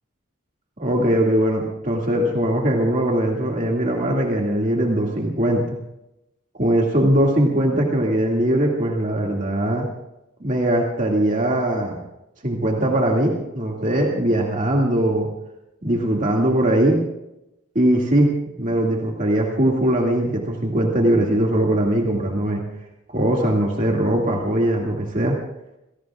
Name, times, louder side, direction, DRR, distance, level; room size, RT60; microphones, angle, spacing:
voice 1, 0.8-5.8 6.5-9.9 10.4-12.0 12.4-15.3 15.8-17.0 17.7-18.3 18.6-22.6 23.1-25.4, right 1 dB, 40° right, -1 dB, 2.3 m, -20 dB
29.5 x 18.0 x 2.4 m, 0.89 s
head